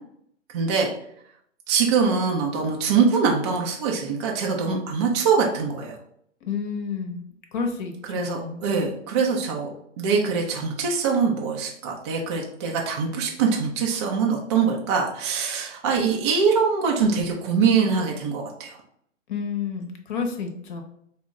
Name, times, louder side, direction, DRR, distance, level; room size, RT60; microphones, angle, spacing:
voice 1, 0.5-0.9 1.7-5.9 8.1-9.7 10.0-18.8, right 5 dB, 25° right, -1 dB, 0.3 m, -23 dB
voice 2, 6.4-7.2 7.5-8.6 19.3-20.8, left 5 dB, 40° left, 4 dB, 0.7 m, -30 dB
4.1 x 2.1 x 3.5 m, 0.69 s
hypercardioid pair, 135°, 38 cm